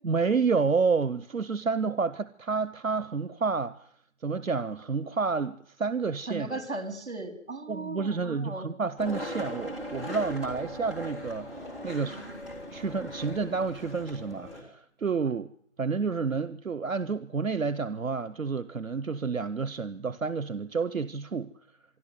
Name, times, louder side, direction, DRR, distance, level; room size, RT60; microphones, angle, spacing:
voice 1, 0.0-3.9 4.2-6.6 7.7-11.5 11.8-12.3 12.7-15.5 15.8-21.5, right 5 dB, 85° right, 0.9 m, -29 dB
voice 2, 6.3-8.7, right 2 dB, 55° right, 4.2 m, -37 dB
Skateboard, 9.0-14.6, equal, ahead, 2.3 m, -39 dB
25.0 x 12.5 x 9.4 m
figure-of-eight pair, 155°, 39 cm